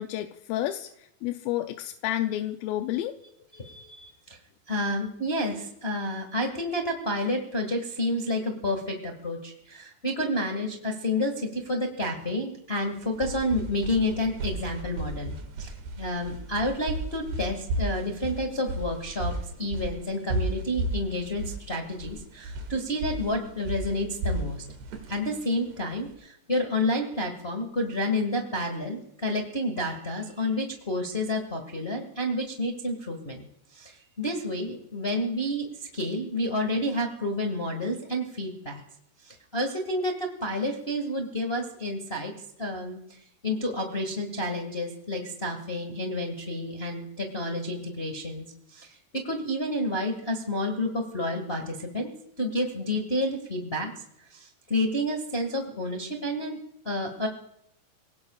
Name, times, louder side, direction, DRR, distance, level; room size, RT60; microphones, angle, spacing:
voice 1, 0.0-3.1, left 13 dB, 80° left, 6 dB, 2.2 m, -30 dB
voice 2, 3.5-4.4 4.7-19.3 19.6-24.6 25.1-33.4 33.7-38.8 39.2-42.3 42.6-43.0 43.4-54.0 54.3-56.6 56.8-57.3, left 1 dB, 50° left, 3 dB, 0.7 m, -30 dB
sound 1, 12.9-26.1, right 2 dB, 85° right, 4.0 m, -34 dB
27.0 x 18.5 x 2.4 m, 0.77 s
omnidirectional pair, 4.5 m